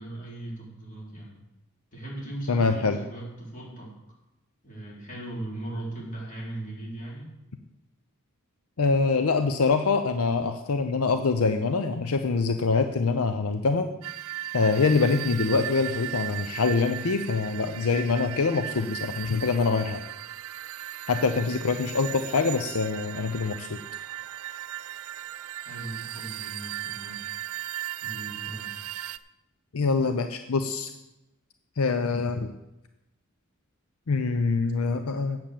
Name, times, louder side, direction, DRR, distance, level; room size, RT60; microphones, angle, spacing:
voice 1, 0.0-1.4 1.9-3.9 4.6-7.3 25.7-27.3 28.0-28.7, right 1 dB, 40° left, -4 dB, 4.1 m, -38 dB
voice 2, 2.5-3.0 8.8-13.9 14.5-20.0 21.1-23.8 29.7-30.9 31.8-32.5 34.1-35.4, left 4 dB, 80° left, 8 dB, 0.7 m, -25 dB
sound 1, 14.0-29.2, right 13 dB, 85° right, 0.4 m, -37 dB
8.7 x 7.7 x 7.5 m, 0.95 s
head